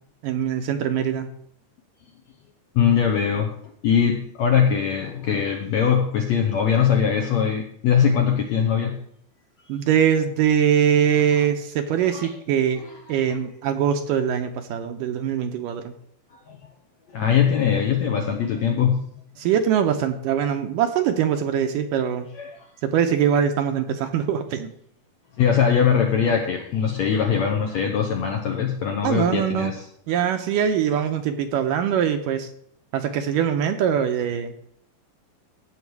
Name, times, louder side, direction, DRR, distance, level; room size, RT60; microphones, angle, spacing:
voice 1, 0.2-1.3 9.7-12.8 13.1-15.9 19.4-22.3 22.8-24.7 29.0-29.7 30.1-32.5 32.9-34.5, right 8 dB, 75° right, 6 dB, 2.2 m, -22 dB
voice 2, 2.7-3.5 3.8-9.0 12.0-12.3 12.8-12.9 16.5-16.6 17.1-19.1 22.4-22.5 25.4-29.8, left 7 dB, 70° left, 3 dB, 1.7 m, -21 dB
16.5 x 6.6 x 4.7 m, 0.66 s
omnidirectional pair, 4.4 m